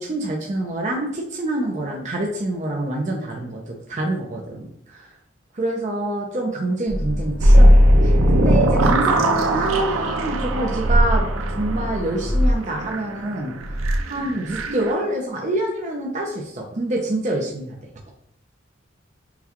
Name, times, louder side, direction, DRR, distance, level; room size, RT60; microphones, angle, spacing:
voice 1, 0.0-5.1 5.5-17.8, right 1 dB, 35° right, -1 dB, 0.5 m, -26 dB
sound 1, 6.9-12.4, equal, 10° left, 0.6 m, -31 dB
sound 2, 7.4-14.9, equal, 90° right, 0.5 m, -18 dB
5.6 x 2.3 x 2.9 m, 0.73 s
head